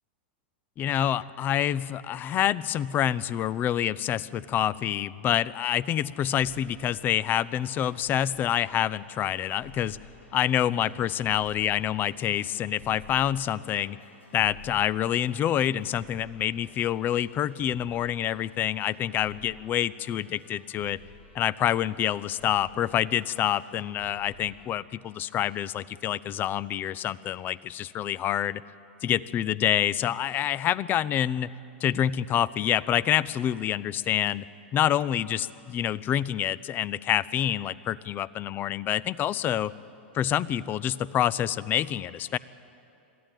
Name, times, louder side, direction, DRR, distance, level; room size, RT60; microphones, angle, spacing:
voice 1, 0.8-10.0 10.3-14.0 14.3-21.0 21.3-28.6 29.0-31.5 31.8-34.4 34.7-39.7 40.1-42.4, left 11 dB, 30° left, 20 dB, 0.5 m, -27 dB
sound 1, 6.2-24.7, left 2 dB, 85° left, 2.2 m, -53 dB
22.0 x 14.5 x 9.2 m, 2.7 s
hypercardioid pair, 115°, 6 cm